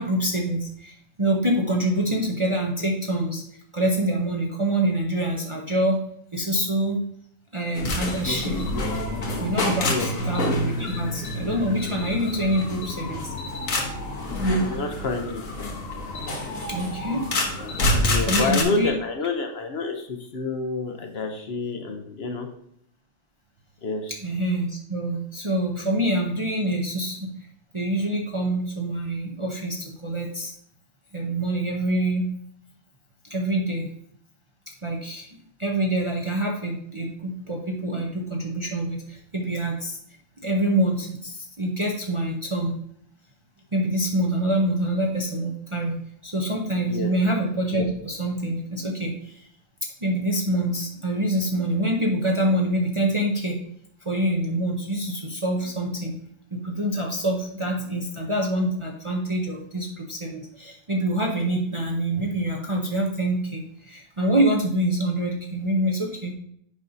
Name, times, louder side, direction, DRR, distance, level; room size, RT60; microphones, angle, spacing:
voice 1, 0.0-3.4 3.7-6.0 6.3-7.0 7.5-8.6 9.4-13.3 16.6-17.3 18.0-18.9 24.2-27.5 27.7-30.5 31.1-32.3 33.3-33.9 34.8-35.3 35.6-40.0 40.4-42.7 43.7-46.0 46.2-49.5 50.0-53.6 54.0-56.1 56.5-66.3, right 1 dB, 30° right, -1 dB, 0.6 m, -26 dB
sound 1, 7.7-18.6, left 1 dB, 80° left, 1.5 m, -27 dB
voice 2, 14.4-15.4 18.0-22.5 23.8-24.1 46.8-47.1, left 3 dB, 55° left, 4 dB, 0.9 m, -28 dB
8.3 x 5.4 x 2.6 m, 0.68 s
omnidirectional pair, 1.4 m